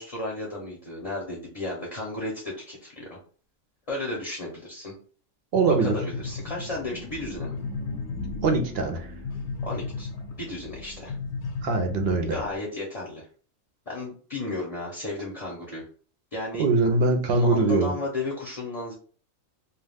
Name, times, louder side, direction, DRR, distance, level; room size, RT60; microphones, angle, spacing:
voice 1, 0.0-3.2 3.9-4.9 5.7-7.6 9.6-10.1 10.4-11.1 12.3-13.2 13.9-15.8 16.3-16.7 17.3-18.9, left 2 dB, 40° left, -3 dB, 0.5 m, -33 dB
sound 1, 5.5-12.6, left 4 dB, 70° left, 0.8 m, -35 dB
voice 2, 5.5-6.0 8.4-9.1 11.6-12.4 16.6-17.9, right 3 dB, 60° right, 5 dB, 0.7 m, -22 dB
2.3 x 2.2 x 3.3 m, 0.42 s
omnidirectional pair, 1.4 m